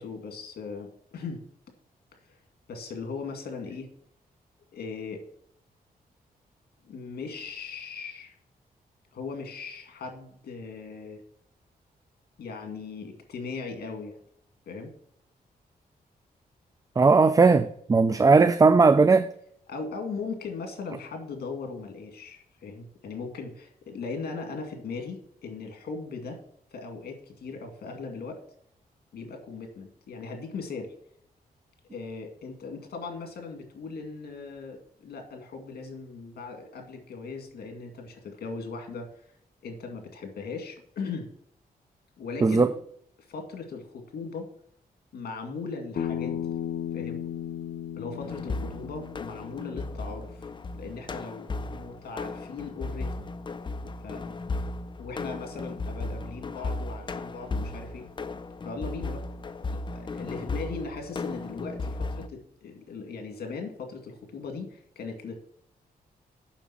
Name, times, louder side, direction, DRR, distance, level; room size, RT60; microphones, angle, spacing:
voice 1, 0.0-1.4 2.3-2.4 2.7-3.9 4.7-5.2 6.8-8.3 9.1-11.2 12.4-14.2 14.7-14.9 19.7-26.4 26.7-28.4 29.1-30.9 31.9-39.1 39.6-41.3 42.2-42.7 43.3-44.5 45.1-46.4 46.9-47.2 48.0-50.5 50.7-53.1 54.0-54.2 55.0-58.1 58.6-59.2 59.7-65.4, left 4 dB, 85° left, 2.1 m, -38 dB
voice 2, 17.0-19.3 42.4-42.7, right 4 dB, 20° right, 0.4 m, -18 dB
Bass guitar, 46.0-50.2, left 9 dB, 65° left, 1.1 m, -35 dB
sound 1, 48.2-62.3, left 3 dB, 30° left, 0.6 m, -35 dB
7.3 x 6.1 x 7.3 m
wide cardioid pair, 115°, 16 cm